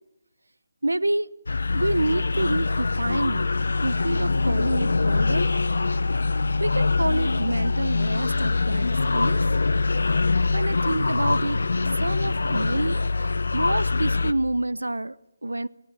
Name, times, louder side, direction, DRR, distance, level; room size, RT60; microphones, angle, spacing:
voice 1, 0.8-1.3 1.7-3.5 3.8-5.5 6.6-9.5 10.5-15.2 15.4-15.7, right 2 dB, 80° right, 17 dB, 0.9 m, -27 dB
sound 1, 1.5-14.3, left 3 dB, 70° left, 1.0 m, -24 dB
24.0 x 18.0 x 8.2 m, 0.85 s
figure-of-eight pair, 150°, 0 cm